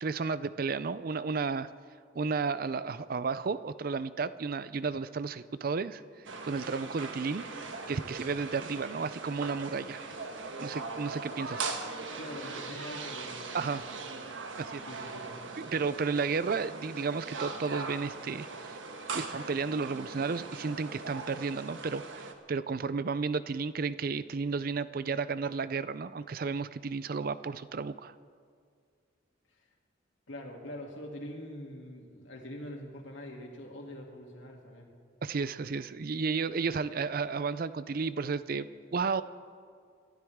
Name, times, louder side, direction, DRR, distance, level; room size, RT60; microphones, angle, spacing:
voice 1, 0.0-1.7 2.2-6.0 6.4-7.4 7.9-10.0 10.6-11.7 13.5-13.8 14.6-14.8 15.6-18.8 19.1-28.1 35.2-39.2, right 4 dB, 50° right, 15 dB, 0.5 m, -33 dB
sound 1, 6.2-22.3, right 4 dB, 85° right, 1.3 m, -40 dB
voice 2, 12.2-13.9 14.9-15.7 29.5-29.6 30.3-34.9, left 1 dB, 80° left, 0 dB, 2.7 m, -44 dB
28.5 x 13.0 x 3.6 m, 2.2 s
head